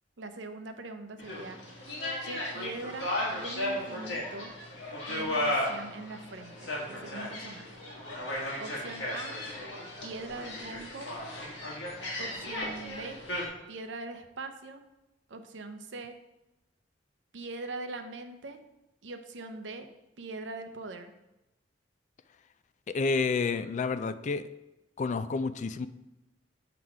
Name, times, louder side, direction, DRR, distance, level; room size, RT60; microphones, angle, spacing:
voice 1, 0.2-1.6 2.2-4.5 5.1-7.7 8.6-9.4 10.0-11.1 12.2-13.2 13.7-14.8 15.3-16.2 17.3-18.6 19.0-19.9 20.2-21.2, right 2 dB, 80° right, 8 dB, 0.7 m, -42 dB
sound 1, 1.2-13.5, left 1 dB, 65° left, 1.8 m, -35 dB
voice 2, 22.9-24.4 25.0-25.9, left 4 dB, 40° left, 12 dB, 0.3 m, -29 dB
7.5 x 4.0 x 4.7 m, 0.94 s
head